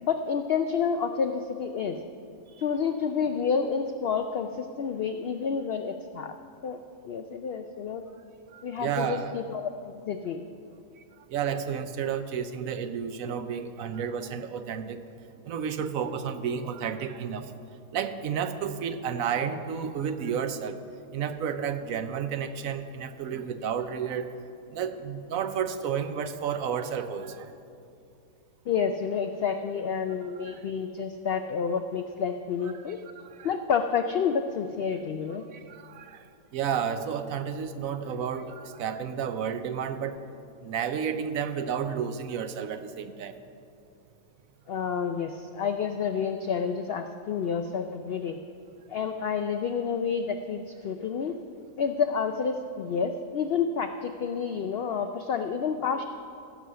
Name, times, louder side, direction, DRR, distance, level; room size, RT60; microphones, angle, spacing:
voice 1, 0.0-2.0 2.6-6.3 6.6-6.8 7.0-8.0 8.6-10.4 28.7-33.0 33.4-35.4 44.7-48.4 48.9-51.3 51.8-56.0, left 6 dB, 80° left, 7 dB, 0.5 m, -29 dB
voice 2, 8.5-9.4 11.3-15.0 15.4-17.5 17.9-20.8 21.1-24.3 24.7-27.5 30.4-30.6 32.6-33.6 35.5-36.2 36.5-40.2 40.6-43.4, right 7 dB, 70° right, 10 dB, 1.0 m, -31 dB
15.0 x 6.3 x 6.8 m, 2.5 s
omnidirectional pair, 1.6 m